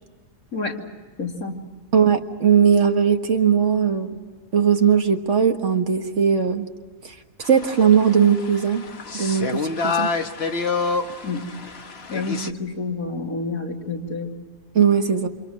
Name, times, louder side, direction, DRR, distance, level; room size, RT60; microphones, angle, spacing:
voice 1, 0.5-0.8 1.2-1.6 11.2-11.5 12.1-14.3, left 3 dB, 80° left, 0 dB, 3.3 m, -29 dB
voice 2, 1.9-4.2 4.5-6.7 7.5-8.9 9.1-10.1 14.8-15.3, right 7 dB, 60° right, 5 dB, 1.8 m, -19 dB
sound 1, 7.4-12.5, left 4 dB, 50° left, 1.4 m, -28 dB
29.0 x 26.5 x 6.2 m, 1.4 s
omnidirectional pair, 1.5 m